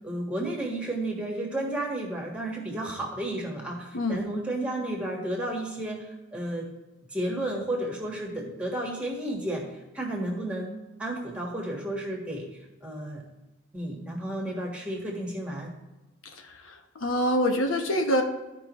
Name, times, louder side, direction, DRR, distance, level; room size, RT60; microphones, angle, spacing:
voice 1, 0.0-6.0 6.3-6.7 7.1-9.6 9.9-10.7 11.0-12.5 12.8-13.2 13.7-15.7, right 1 dB, 5° right, -1 dB, 1.4 m, -32 dB
voice 2, 3.9-4.2 16.3-18.2, equal, 85° left, 4 dB, 1.0 m, -26 dB
13.5 x 5.3 x 3.0 m, 1.1 s
head